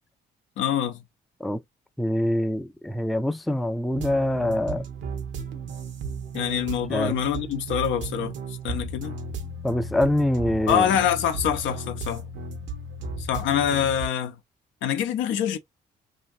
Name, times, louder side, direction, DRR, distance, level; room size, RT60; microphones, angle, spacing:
voice 1, 0.6-1.0 6.3-9.2 10.7-12.3 13.2-14.4 14.8-15.6, left 9 dB, 80° left, 0.6 m, -25 dB
voice 2, 2.0-4.8 6.9-7.1 9.6-10.9, left 1 dB, ahead, 0.3 m, -24 dB
sound 1, 3.9-14.1, right 3 dB, 75° right, 0.8 m, -35 dB
2.8 x 2.4 x 2.6 m
supercardioid pair, 65°, 19 cm